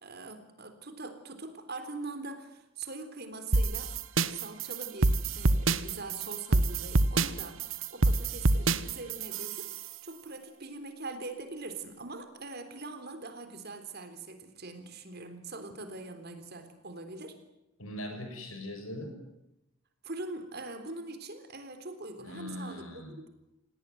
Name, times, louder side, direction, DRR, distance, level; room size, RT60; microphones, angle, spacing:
voice 1, 0.0-3.9 4.3-7.6 7.9-9.7 10.0-17.4 20.0-23.3, right 3 dB, 45° right, 8 dB, 3.7 m, -42 dB
sound 1, 3.5-9.9, right 2 dB, 65° right, 1.1 m, -27 dB
voice 2, 17.8-19.2 22.2-23.2, left 1 dB, 70° left, 6 dB, 6.8 m, -40 dB
29.0 x 18.5 x 9.4 m, 0.88 s
head